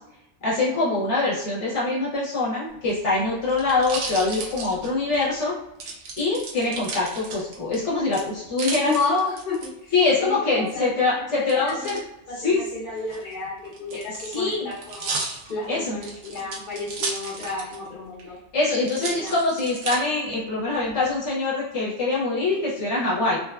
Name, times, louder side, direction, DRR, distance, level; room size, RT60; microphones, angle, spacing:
voice 1, 0.4-5.6 5.9-8.9 9.9-12.0 12.4-12.6 13.9-14.7 15.7-16.0 18.5-23.4, left 3 dB, 70° left, -6 dB, 1.0 m, -24 dB
sound 1, 2.7-5.3 5.8-7.8 8.1-9.7 11.5-12.0 13.0-17.9 18.2-18.3 18.8-20.0 20.6-21.1, right 4 dB, 80° right, 1.0 m, -34 dB
voice 2, 8.8-12.0 12.3-15.2 15.5-18.4 19.1-19.3, left 3 dB, 45° left, -8 dB, 0.9 m, -31 dB
3.1 x 2.1 x 2.3 m, 0.88 s
omnidirectional pair, 1.2 m